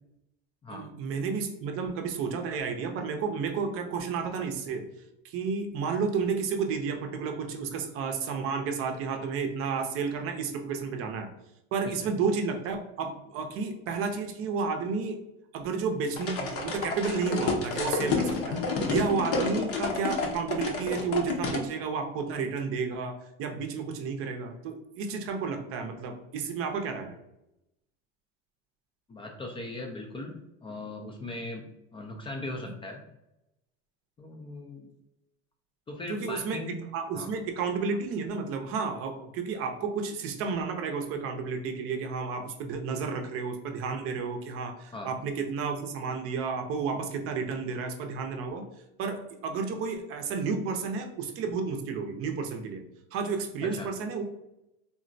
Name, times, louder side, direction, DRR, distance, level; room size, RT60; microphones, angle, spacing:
voice 1, 0.7-4.8 5.2-11.3 11.7-15.2 15.5-27.2 36.1-48.7 49.0-52.8 53.1-54.2, right 5 dB, 50° right, 5 dB, 0.6 m, -31 dB
sound 1, 16.2-21.6, left 4 dB, 50° left, 0.7 m, -30 dB
voice 2, 29.1-31.7 31.9-33.0 34.2-34.9 35.9-36.8 37.1-37.3 44.9-45.1 53.6-53.9, left 2 dB, 20° left, 2 dB, 0.3 m, -39 dB
3.7 x 2.0 x 2.6 m, 0.88 s
cardioid pair, 130°, 29 cm